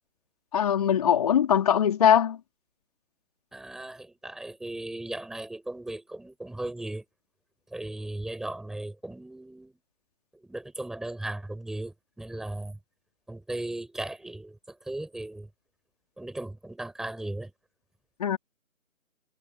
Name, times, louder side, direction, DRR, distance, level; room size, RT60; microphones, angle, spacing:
voice 1, 0.5-2.4 18.2-18.4, left 9 dB, 25° left, 4.2 m, -21 dB
voice 2, 3.5-7.0 7.7-9.8 10.4-12.8 13.3-15.5 16.2-17.5, right 1 dB, ahead, 7.0 m, -37 dB
figure-of-eight pair, 165°, 41 cm